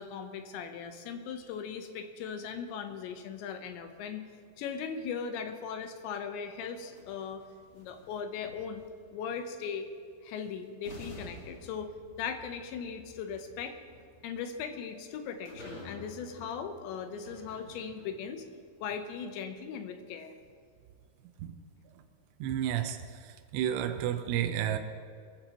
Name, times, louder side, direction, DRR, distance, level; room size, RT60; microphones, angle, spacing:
voice 1, 0.0-4.3 4.6-7.4 7.7-8.8 9.1-9.9 10.2-11.9 12.2-13.8 14.2-18.4 18.8-20.3, left 6 dB, 75° left, 7 dB, 3.1 m, -38 dB
sound 1, 6.7-9.1 10.3-10.4 10.8-18.3, left 1 dB, 30° left, 3.0 m, -51 dB
voice 2, 22.4-24.8, right 10 dB, 80° right, 6 dB, 2.8 m, -31 dB
22.0 x 15.0 x 3.0 m, 2.2 s
omnidirectional pair, 5.4 m